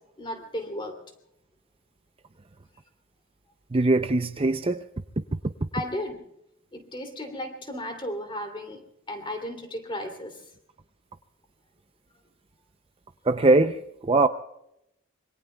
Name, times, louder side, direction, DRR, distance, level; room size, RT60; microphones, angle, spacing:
voice 1, 0.2-1.0 5.7-6.2 6.7-8.8 9.1-10.4, left 1 dB, 25° left, 2.8 m, -34 dB
voice 2, 3.7-4.8 13.3-14.3, right 2 dB, 25° right, 0.5 m, -21 dB
26.5 x 24.0 x 2.3 m
head